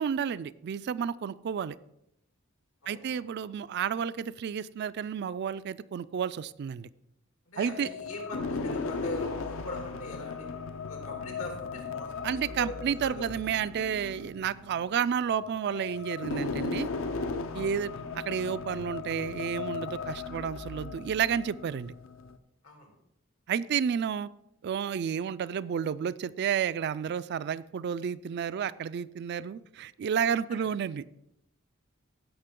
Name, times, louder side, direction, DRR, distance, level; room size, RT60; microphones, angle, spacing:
voice 1, 0.0-1.8 2.9-6.9 7.6-7.9 12.2-16.9 17.5-21.9 23.5-24.3 24.6-31.0, right 7 dB, 55° right, 16 dB, 0.3 m, -31 dB
voice 2, 7.5-10.5 10.8-13.1 17.5-17.7 22.6-22.9, left 2 dB, 90° left, 1 dB, 2.9 m, -41 dB
sound 1, 7.6-22.4, left 4 dB, 70° left, 0.6 m, -37 dB
15.5 x 5.8 x 3.7 m, 0.81 s
head